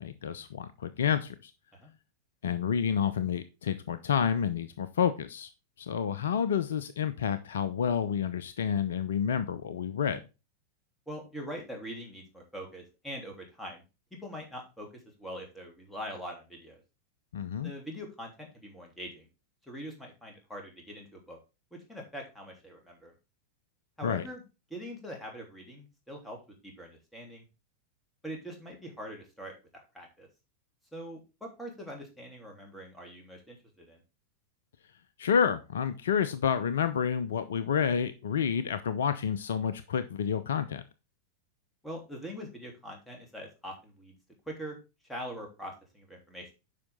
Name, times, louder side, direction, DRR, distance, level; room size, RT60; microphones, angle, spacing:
voice 1, 0.0-1.5 2.4-5.5 5.8-10.2 17.3-17.7 24.0-24.2 35.2-40.8, left 7 dB, 65° left, 12 dB, 0.7 m, -29 dB
voice 2, 11.1-13.8 14.2-14.9 15.2-16.8 17.6-19.3 19.6-21.4 21.7-23.1 24.0-24.4 24.7-26.4 26.6-27.4 28.2-29.5 29.9-30.3 30.9-34.0 41.8-44.1 44.4-44.8 45.0-46.5, equal, 5° left, 0 dB, 3.4 m, -43 dB
9.7 x 5.8 x 3.7 m, 0.28 s
figure-of-eight pair, 90°, 0 cm